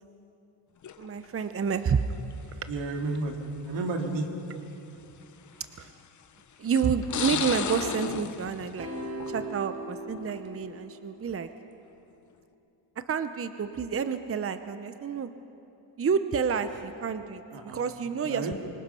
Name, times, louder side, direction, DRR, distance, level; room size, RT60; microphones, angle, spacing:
sound 1, 0.8-1.3 2.3-2.4 3.5-3.6 4.1-4.2 5.6-6.0 6.7-9.6 10.0-10.4, left 8 dB, 40° left, 0.8 m, -34 dB
voice 1, 1.0-2.0 2.6-2.7 4.5-4.6 5.8-5.9 6.6-8.9 9.3-11.5 13.1-15.3 16.0-18.5, right 6 dB, 30° right, 10 dB, 0.7 m, -29 dB
voice 2, 2.7-3.4 3.6-4.3 16.7-16.8 17.5-17.8 18.2-18.5, right 3 dB, 75° right, 3 dB, 2.4 m, -32 dB
sound 2, 8.8-11.2, right 1 dB, 60° right, 5.8 m, -39 dB
25.0 x 21.5 x 5.7 m, 2.9 s
cardioid pair, 100°, 45 cm